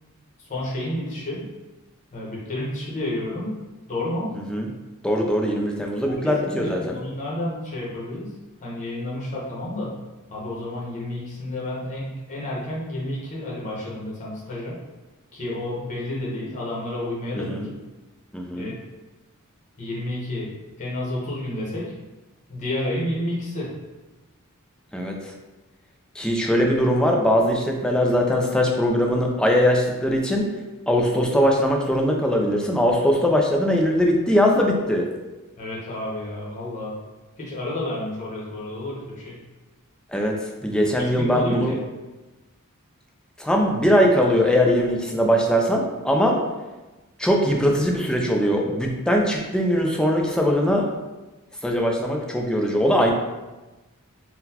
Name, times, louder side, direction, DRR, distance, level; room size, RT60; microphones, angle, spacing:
voice 1, 0.4-1.4 2.1-3.5 3.9-4.3 6.0-6.1 6.4-8.3 8.6-9.9 10.3-14.8 15.3-17.7 18.5-18.8 19.8-21.9 22.5-23.7 35.6-37.0 37.4-39.4 41.0-41.8, left 1 dB, 35° left, -5 dB, 0.9 m, -30 dB
voice 2, 5.0-7.0 17.3-17.7 18.3-18.7 24.9-25.3 26.2-30.5 30.9-35.1 40.1-40.4 40.6-41.7 43.4-46.4 47.2-50.9 51.6-53.1, equal, 5° left, 0 dB, 0.3 m, -21 dB
3.8 x 2.1 x 2.8 m, 1.1 s
head